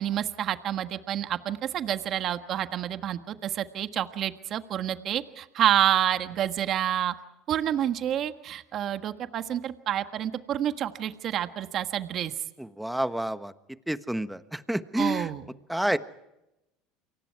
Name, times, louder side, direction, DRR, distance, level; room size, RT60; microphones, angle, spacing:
voice 1, 0.0-7.1 7.5-12.3 15.0-15.4, right 10 dB, 50° right, 9 dB, 1.5 m, -28 dB
voice 2, 12.6-13.5 13.9-15.3 15.7-16.0, right 1 dB, 5° right, 11 dB, 1.3 m, -29 dB
29.0 x 24.0 x 4.8 m, 0.90 s
supercardioid pair, 95°, 0 cm